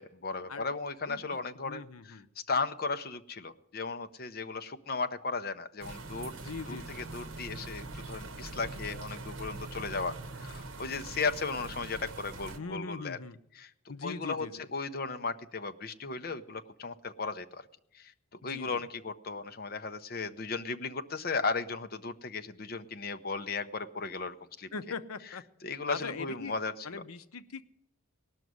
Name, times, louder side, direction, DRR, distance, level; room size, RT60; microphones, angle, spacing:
voice 1, 0.0-2.2 2.5-6.3 6.7-13.2 13.6-13.7 14.0-14.5 14.7-17.7 17.9-18.1 18.4-24.7 25.6-27.0, left 4 dB, 45° left, 9 dB, 0.6 m, -36 dB
voice 2, 1.1-1.4 1.7-2.3 6.4-7.1 12.6-13.4 13.9-14.7 18.4-18.8 24.7-25.4 25.9-26.5 26.8-27.6, left 4 dB, 80° left, 13 dB, 0.7 m, -41 dB
sound 1, 5.8-12.6, right 2 dB, 65° right, 1.1 m, -43 dB
18.0 x 6.2 x 9.3 m, 0.79 s
head